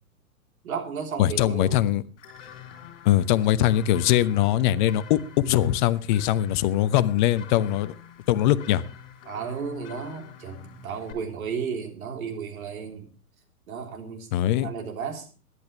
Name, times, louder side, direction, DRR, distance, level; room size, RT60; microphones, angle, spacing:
voice 1, 0.6-1.9 9.3-13.1 13.7-14.3 14.6-15.3, right 6 dB, 65° right, 3 dB, 3.7 m, -33 dB
voice 2, 1.2-2.0 3.0-7.9 8.3-8.8 14.3-14.7, left 12 dB, 35° left, 14 dB, 0.8 m, -22 dB
sound 1, 2.2-11.1, left 9 dB, 55° left, 3.6 m, -45 dB
22.5 x 11.0 x 3.2 m, 0.35 s
hypercardioid pair, 125°, 45 cm